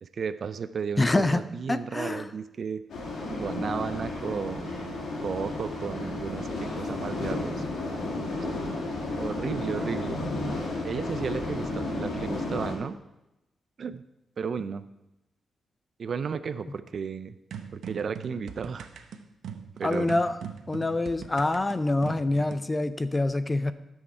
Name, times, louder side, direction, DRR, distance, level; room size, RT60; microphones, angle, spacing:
voice 1, 0.0-2.8 3.3-7.6 8.4-8.6 9.2-10.2 10.8-13.0 13.8-14.0 14.4-14.9 16.0-17.4 17.7-18.9 19.8-20.2, right 6 dB, 50° right, 13 dB, 0.4 m, -34 dB
voice 2, 1.0-1.4 1.7-2.3 19.8-20.4 20.7-23.7, left 2 dB, 20° left, 12 dB, 0.5 m, -26 dB
sound 1, 2.9-12.7, left 2 dB, 85° left, 2.4 m, -32 dB
sound 2, 17.5-22.7, right 7 dB, 85° right, 0.8 m, -41 dB
13.0 x 6.4 x 4.4 m, 0.92 s
wide cardioid pair, 125°, 0 cm